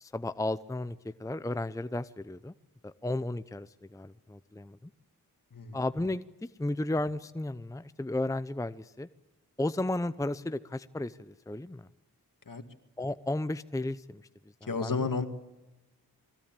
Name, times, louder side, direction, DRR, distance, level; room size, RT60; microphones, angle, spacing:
voice 1, 0.0-2.5 2.8-4.9 5.7-6.2 6.6-9.1 9.6-11.9 13.0-14.2 14.6-15.1, left 2 dB, 10° left, 13 dB, 0.7 m, -34 dB
voice 2, 14.7-15.3, left 4 dB, 60° left, 8 dB, 2.2 m, -31 dB
22.0 x 16.0 x 9.0 m, 1.0 s
cardioid pair, 45°, 37 cm